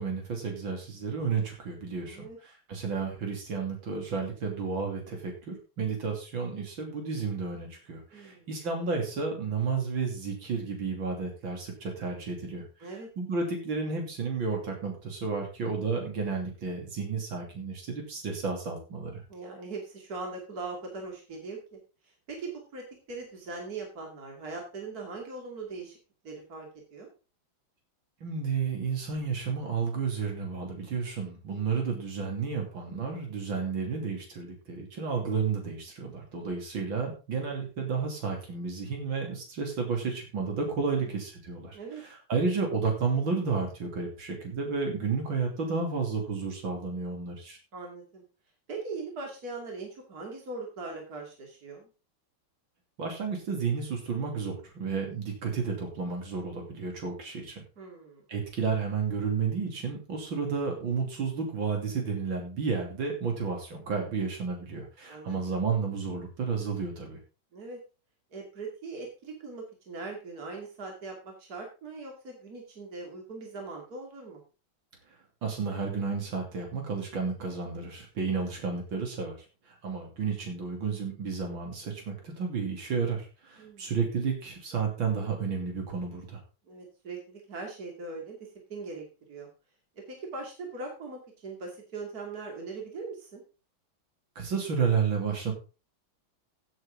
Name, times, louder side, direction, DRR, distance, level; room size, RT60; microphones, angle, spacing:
voice 1, 0.0-19.2 28.2-47.6 53.0-57.6 58.3-67.2 75.4-79.4 79.7-86.4 94.4-95.5, right 5 dB, 70° right, 2 dB, 3.8 m, -32 dB
voice 2, 2.0-2.4 8.1-8.5 12.8-13.1 19.3-21.8 22.0-26.0 26.2-27.1 40.9-41.2 41.7-42.0 47.7-48.2 48.7-51.9 57.8-58.2 65.0-65.6 67.5-67.8 68.3-74.4 83.6-83.9 86.6-88.4 88.7-89.5 90.1-93.4, right 3 dB, 45° right, 1 dB, 3.1 m, -40 dB
16.0 x 7.9 x 3.8 m, 0.32 s
omnidirectional pair, 2.2 m